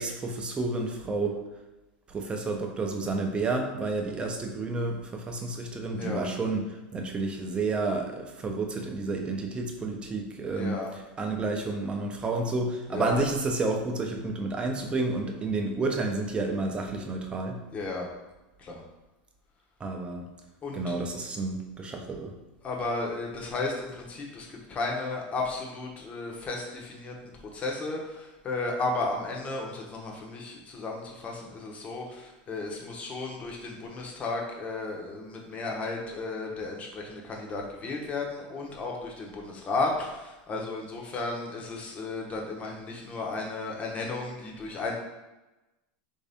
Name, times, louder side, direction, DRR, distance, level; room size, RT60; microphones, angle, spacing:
voice 1, 0.0-1.4 2.1-10.8 11.2-17.6 19.8-20.3 20.7-22.3, right 3 dB, 20° right, 3 dB, 0.5 m, -30 dB
voice 2, 10.5-10.9 12.9-13.2 17.7-18.1 18.6-18.8 20.6-21.0 22.6-27.1 27.5-45.0, left 3 dB, 25° left, 0 dB, 0.8 m, -34 dB
3.4 x 2.7 x 3.4 m, 1.1 s
supercardioid pair, 125°, 5 cm